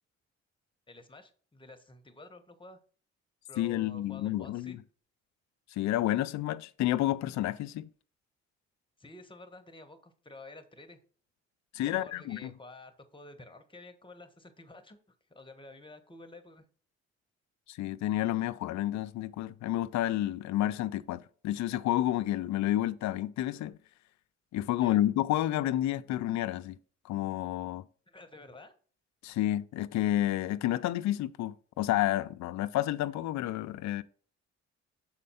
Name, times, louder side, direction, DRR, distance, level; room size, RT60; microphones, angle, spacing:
voice 1, 0.9-2.8 3.5-4.8 9.0-11.0 11.8-16.6 24.7-25.0 28.1-28.7, left 2 dB, 15° left, 1.2 m, -51 dB
voice 2, 3.6-4.8 5.7-7.9 11.7-12.5 17.7-23.8 24.5-26.8 27.0-27.8 29.2-34.0, left 14 dB, 70° left, 0.5 m, -30 dB
6.5 x 4.2 x 5.5 m
cardioid pair, 75°, 29 cm